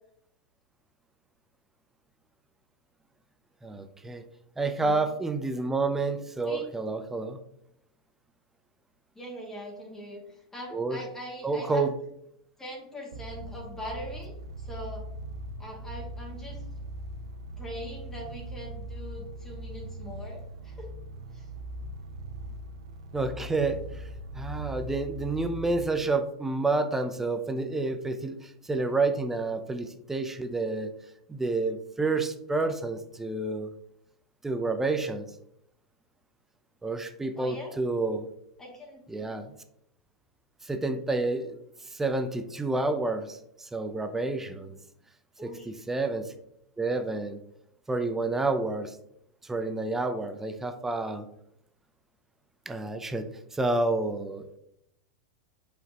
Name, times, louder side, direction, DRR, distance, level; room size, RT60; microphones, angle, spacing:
voice 1, 3.6-4.2 4.6-7.4 10.7-11.0 11.4-11.9 23.1-24.0 24.3-30.9 31.3-33.7 34.4-35.3 36.8-38.3 39.1-39.5 40.6-41.5 41.8-44.7 45.4-46.3 46.8-47.4 47.9-49.0 49.4-51.3 52.7-53.2 53.5-54.4, right 3 dB, 10° right, 8 dB, 0.6 m, -29 dB
voice 2, 9.2-11.9 12.6-15.0 15.6-16.6 17.6-20.9 21.3-21.4 37.4-37.7 38.6-39.3 45.4-45.7, equal, 15° left, -1 dB, 2.3 m, -42 dB
sound 1, 13.1-25.9, right 1 dB, 80° right, 0.7 m, -40 dB
7.7 x 5.1 x 3.0 m, 0.75 s
hypercardioid pair, 105°, 3 cm